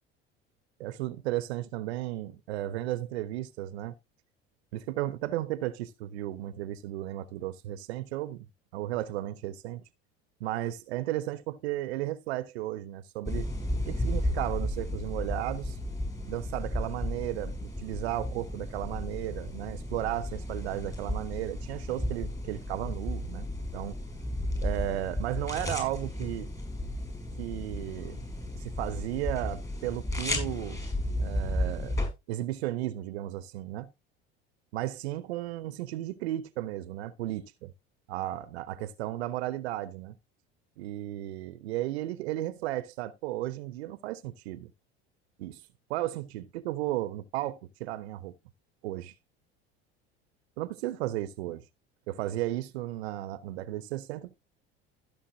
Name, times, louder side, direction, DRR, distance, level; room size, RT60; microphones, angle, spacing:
voice 1, 0.8-3.9 4.7-8.5 8.7-9.8 10.4-13.5 13.8-15.8 16.3-23.5 23.7-24.0 24.6-26.5 27.4-28.2 28.6-30.8 31.2-32.0 32.3-33.9 34.7-37.7 38.1-40.1 40.8-44.7 45.4-45.6 45.9-48.3 48.8-49.1 50.6-51.6 52.1-54.4, right 14 dB, 80° right, 0.7 m, -34 dB
sound 1, 13.3-32.1, left 1 dB, 10° left, 5.7 m, -34 dB
15.0 x 6.9 x 2.7 m
hypercardioid pair, 80°, 31 cm